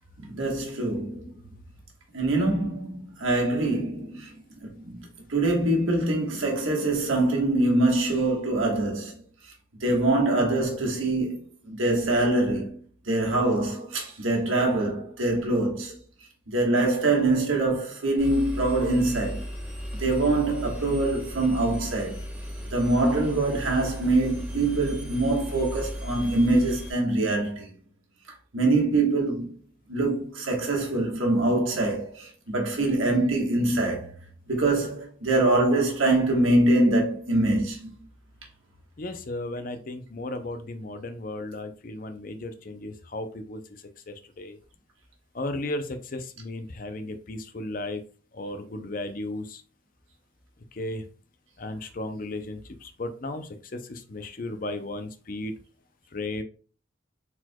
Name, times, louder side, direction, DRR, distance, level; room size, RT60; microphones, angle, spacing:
voice 1, 0.2-1.4 2.1-5.0 5.3-9.2 9.8-11.4 11.7-12.8 13.1-16.0 16.5-19.4 20.0-22.2 22.7-27.7 28.5-29.5 29.9-34.1 34.5-38.0, right 2 dB, 90° right, 1.4 m, -24 dB
Engine, 18.2-26.9, equal, 10° right, 0.9 m, -36 dB
voice 2, 39.0-44.6 45.3-48.0 48.3-49.6 50.7-51.1 51.6-55.5 56.1-56.4, left 2 dB, 45° left, 0.5 m, -35 dB
4.4 x 4.2 x 2.3 m
head